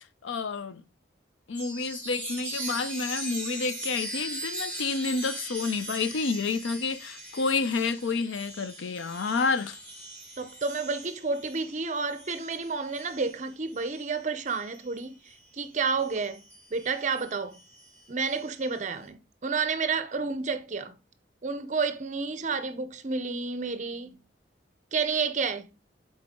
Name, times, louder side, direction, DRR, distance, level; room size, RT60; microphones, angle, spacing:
voice 1, 0.2-0.8 1.5-9.8, left 4 dB, 80° left, 0.5 m, -29 dB
Chime, 1.5-15.5 16.0-18.8, right 1 dB, 10° left, 2.2 m, -41 dB
voice 2, 10.4-15.1 15.5-16.4 16.7-17.6 18.1-21.0 21.4-24.2 24.9-25.7, right 4 dB, 40° right, 0.6 m, -30 dB
7.6 x 4.0 x 3.6 m
head